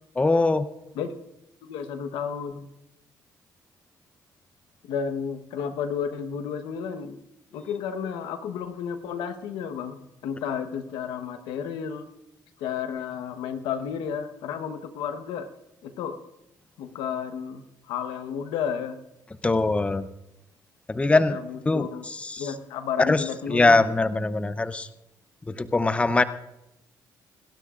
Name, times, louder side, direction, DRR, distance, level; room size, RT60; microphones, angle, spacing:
voice 1, 0.2-0.7 19.4-20.1 20.9-21.4 21.7-22.5 23.0-24.9 25.5-26.2, left 3 dB, 15° left, 12 dB, 0.6 m, -22 dB
voice 2, 1.6-2.7 4.8-7.2 7.5-12.1 12.6-15.5 15.8-16.2 16.8-19.0 21.3-22.1 22.4-23.8, left 7 dB, 90° left, 9 dB, 1.1 m, -32 dB
27.0 x 12.5 x 2.5 m, 0.92 s
cardioid pair, 100°, 8 cm